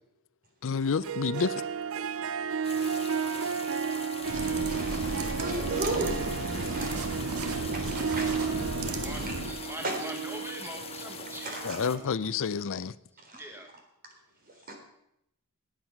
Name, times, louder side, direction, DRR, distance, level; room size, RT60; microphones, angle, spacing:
voice 1, 0.6-1.5 11.6-12.9, left 5 dB, 60° left, 0.5 m, -29 dB
Harp, 0.9-12.1, right 6 dB, 65° right, 0.5 m, -33 dB
sound 1, 2.6-12.0, left 6 dB, 25° left, 1.0 m, -43 dB
voice 2, 3.9-7.0 7.6-8.5 8.8-9.3 9.8-10.0 11.2-11.8 13.3-13.4 14.7-14.8, right 2 dB, 40° right, 3.8 m, -36 dB
sound 2, 4.2-9.6, right 2 dB, 85° right, 1.5 m, -34 dB
voice 3, 7.9-8.6 9.0-12.1 13.3-13.7, right 1 dB, 10° right, 1.3 m, -43 dB
19.0 x 9.0 x 5.9 m
head